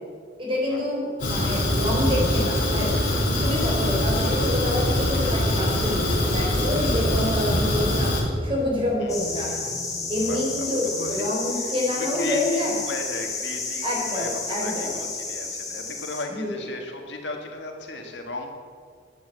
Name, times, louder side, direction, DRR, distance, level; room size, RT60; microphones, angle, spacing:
voice 1, 0.4-2.9 3.4-8.1 8.4-9.5 10.1-12.8 13.8-14.9 16.3-16.5, left 1 dB, 25° right, -3 dB, 4.3 m, -27 dB
Fire, 1.2-8.2, left 1 dB, 40° left, 3.5 m, -23 dB
sound 1, 5.5-7.9 8.1-11.0, right 1 dB, ahead, 3.6 m, -42 dB
sound 2, 9.1-16.3, left 4 dB, 15° left, 2.1 m, -31 dB
voice 2, 10.3-18.5, left 2 dB, 60° left, 3 dB, 1.7 m, -36 dB
12.0 x 9.3 x 8.0 m, 2.1 s
head